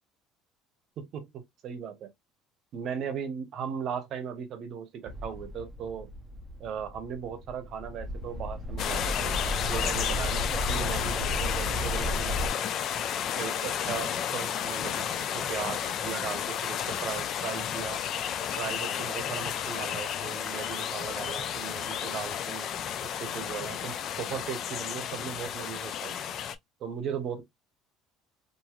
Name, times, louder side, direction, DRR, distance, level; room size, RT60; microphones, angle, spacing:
voice 1, 1.0-2.1 2.7-6.1 6.6-12.7 13.3-18.0 18.6-22.7 23.2-26.1 26.8-27.4, right 7 dB, 45° right, 0.8 m, -37 dB
sound 1, 5.1-12.5, left 1 dB, 10° right, 0.6 m, -34 dB
sound 2, 8.8-26.6, left 9 dB, 45° left, 0.3 m, -32 dB
3.0 x 2.6 x 2.3 m
cardioid pair, 145°, 0 cm